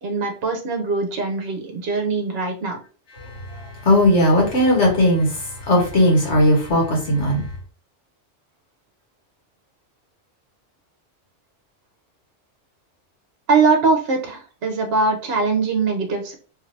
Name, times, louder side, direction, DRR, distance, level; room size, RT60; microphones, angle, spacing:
voice 1, 0.0-2.8 13.5-16.3, right 4 dB, 60° right, 1.0 m, -21 dB
voice 2, 3.8-5.3 5.7-7.4, left 1 dB, 70° left, 1.6 m, -17 dB
3.2 x 2.7 x 3.2 m
omnidirectional pair, 1.2 m